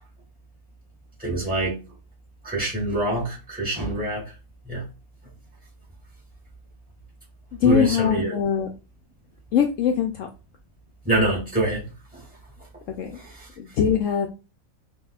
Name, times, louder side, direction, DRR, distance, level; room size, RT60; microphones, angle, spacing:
voice 1, 1.2-1.8 2.4-4.3 4.7-4.9 7.6-8.4 11.0-11.8 12.1-12.3 13.1-13.5, right 1 dB, 5° right, 2.1 m, -25 dB
voice 2, 7.6-8.7 9.5-10.3 12.9-13.2 13.6-14.3, left 7 dB, 70° left, 0.9 m, -22 dB
5.4 x 2.7 x 2.3 m
omnidirectional pair, 1.5 m